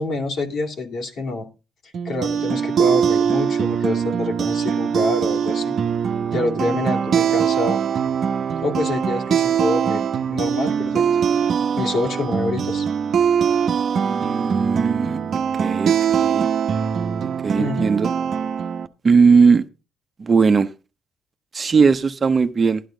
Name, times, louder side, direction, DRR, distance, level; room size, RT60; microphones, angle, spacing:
voice 1, 0.0-1.5 2.0-5.8 6.3-7.8 8.6-10.0 10.3-11.1 11.8-12.8 17.6-18.0, left 2 dB, 65° left, 2.7 m, -26 dB
sound 1, 1.9-18.9, right 7 dB, 60° right, 0.9 m, -22 dB
voice 2, 14.0-16.5 17.4-18.1 19.0-19.6 20.2-20.7 21.5-22.8, right 5 dB, 35° right, 0.9 m, -18 dB
12.0 x 11.5 x 3.9 m
cardioid pair, 90°, 0 cm